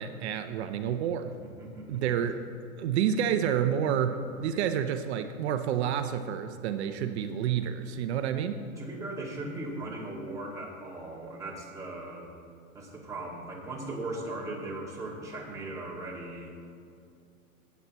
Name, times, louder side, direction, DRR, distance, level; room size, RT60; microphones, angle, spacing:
voice 1, 0.0-1.3 1.9-2.4 2.8-8.6, right 9 dB, 50° right, 9 dB, 0.6 m, -29 dB
voice 2, 1.4-2.0 8.8-12.3 12.7-16.7, right 2 dB, 5° right, -5 dB, 2.0 m, -38 dB
16.0 x 8.1 x 3.0 m, 2.4 s
hypercardioid pair, 135°, 42 cm